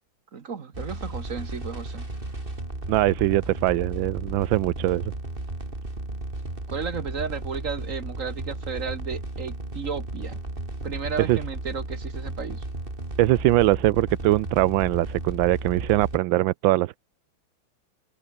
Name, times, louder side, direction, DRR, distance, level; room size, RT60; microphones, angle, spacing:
voice 1, 0.3-2.1 6.7-10.4 10.8-12.6, right 5 dB, 45° right, 1.6 m, -33 dB
sound 1, 0.7-16.2, right 2 dB, 25° right, 4.5 m, -34 dB
voice 2, 2.9-5.0 11.3-11.4 13.2-17.0, right 16 dB, 90° right, 1.4 m, -22 dB
omnidirectional pair, 2.1 m